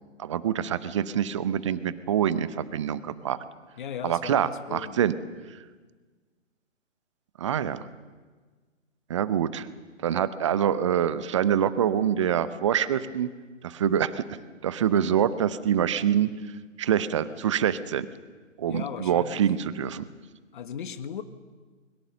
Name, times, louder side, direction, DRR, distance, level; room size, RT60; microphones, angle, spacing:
voice 1, 0.2-3.4 4.0-5.1 7.4-7.8 9.1-9.7 10.0-13.3 13.6-14.2 14.6-16.3 16.8-18.1 18.6-20.1, right 9 dB, 25° right, 16 dB, 0.7 m, -25 dB
voice 2, 3.8-5.0 18.7-19.5 20.5-21.2, left 8 dB, 40° left, 12 dB, 1.4 m, -37 dB
23.5 x 22.0 x 6.8 m, 1.4 s
figure-of-eight pair, 135°, 38 cm